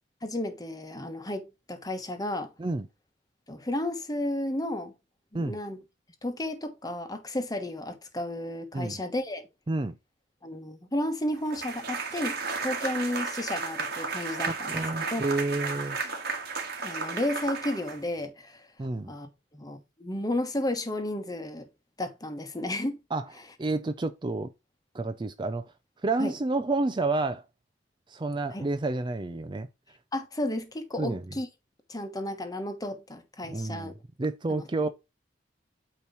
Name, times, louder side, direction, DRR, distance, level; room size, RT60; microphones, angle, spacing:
voice 1, 0.2-2.5 3.5-4.9 5.3-5.8 6.2-9.5 10.4-14.8 15.1-15.2 16.8-18.7 19.1-19.3 19.5-21.7 22.0-23.0 26.2-26.3 28.5-28.7 30.1-31.5 31.9-33.9 34.5-34.6, left 1 dB, 20° left, 1.1 m, -33 dB
sound 1, 11.5-18.3, right 4 dB, 60° right, 1.8 m, -33 dB
voice 2, 14.7-16.0 18.8-19.1 23.1-23.3 23.6-24.5 24.9-25.7 26.0-27.4 28.1-29.7 31.0-31.2 33.5-33.9 34.2-34.9, right 2 dB, 25° right, 0.5 m, -29 dB
8.8 x 3.1 x 5.6 m
head